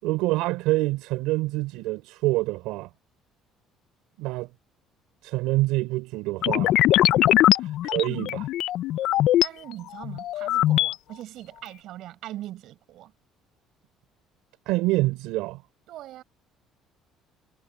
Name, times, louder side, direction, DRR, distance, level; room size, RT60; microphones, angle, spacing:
voice 1, 0.0-2.9 4.2-4.5 5.2-6.8 7.8-8.5 14.7-15.6, right 19 dB, 90° right, 3.6 m, -26 dB
sound 1, 6.4-9.5 10.0-10.9, left 13 dB, 70° left, 0.4 m, -21 dB
voice 2, 7.1-7.5 9.4-13.1 15.9-16.2, right 14 dB, 65° right, 5.3 m, -41 dB
cardioid pair, 120°, 0 cm